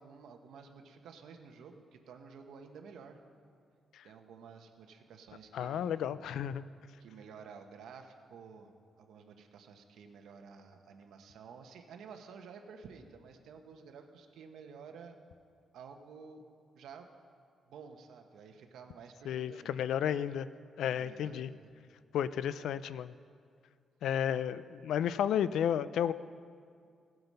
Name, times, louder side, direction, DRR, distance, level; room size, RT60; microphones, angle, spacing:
voice 1, 0.0-3.2 4.0-6.1 7.0-15.2 15.7-16.4 16.7-17.1 17.7-19.8 21.0-21.7, right 6 dB, 85° right, 5 dB, 1.1 m, -52 dB
voice 2, 5.5-6.7 19.3-20.5 20.8-21.5 22.1-23.1 24.0-26.1, left 9 dB, 85° left, 15 dB, 0.3 m, -32 dB
17.5 x 7.9 x 5.4 m, 2.2 s
wide cardioid pair, 165°, 0 cm